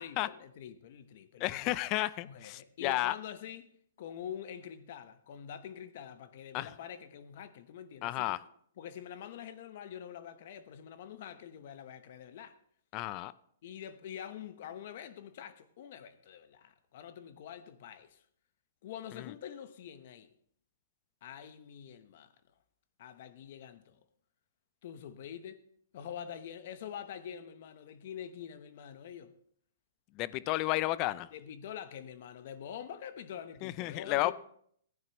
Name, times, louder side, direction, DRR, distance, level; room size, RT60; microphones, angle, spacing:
voice 1, 0.0-1.8 2.2-3.7 4.0-8.4 8.8-12.6 13.6-18.2 18.8-20.3 21.2-22.3 23.0-24.0 24.8-25.6 25.9-29.4 30.4-30.5 31.3-34.3, left 9 dB, 55° left, 1.0 m, -45 dB
voice 2, 1.4-3.1 6.5-6.7 8.0-8.4 12.9-13.3 19.1-19.3 30.2-31.3 33.6-34.3, left 17 dB, 35° left, 0.4 m, -32 dB
15.5 x 9.2 x 3.0 m
hypercardioid pair, 140°, 0 cm